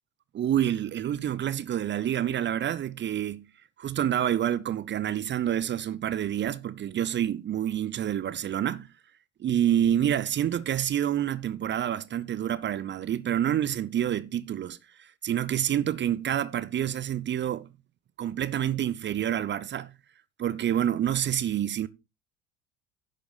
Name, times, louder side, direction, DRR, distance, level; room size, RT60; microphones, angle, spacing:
voice 1, 0.3-3.4 3.8-8.9 9.4-17.7 18.2-19.9 20.4-21.9, right 10 dB, 30° right, 0.7 m, -28 dB
11.0 x 6.7 x 4.0 m
figure-of-eight pair, 65°, 36 cm